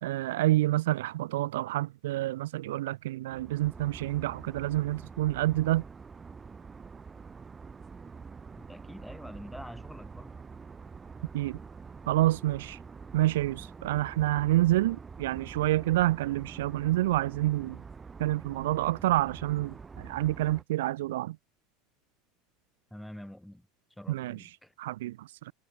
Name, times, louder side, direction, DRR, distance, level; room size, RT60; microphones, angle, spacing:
voice 1, 0.0-5.8 11.3-11.6 12.1-12.8 13.1-17.8 18.2-21.4 24.1-24.4 24.8-25.5, right 16 dB, 70° right, 0.5 m, -28 dB
sound 1, 3.3-20.6, right 5 dB, 20° right, 0.9 m, -46 dB
voice 2, 8.6-10.4 22.9-24.7, left 1 dB, ahead, 3.1 m, -46 dB
hypercardioid pair, 80°, 0 cm